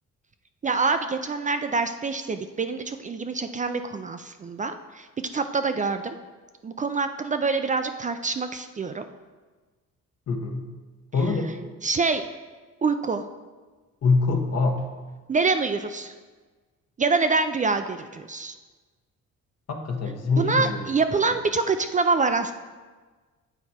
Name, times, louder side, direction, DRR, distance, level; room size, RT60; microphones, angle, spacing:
voice 1, 0.6-6.2 6.6-9.0 11.8-12.2 12.8-13.2 15.3-16.1 17.0-18.5 20.4-22.5, right 4 dB, 25° right, 8 dB, 0.4 m, -25 dB
voice 2, 10.3-10.6 11.1-11.5 14.0-14.8 19.7-20.8 21.1-21.2, left 3 dB, 55° left, 2 dB, 1.2 m, -24 dB
7.9 x 4.6 x 4.2 m, 1.3 s
cardioid pair, 90°, 30 cm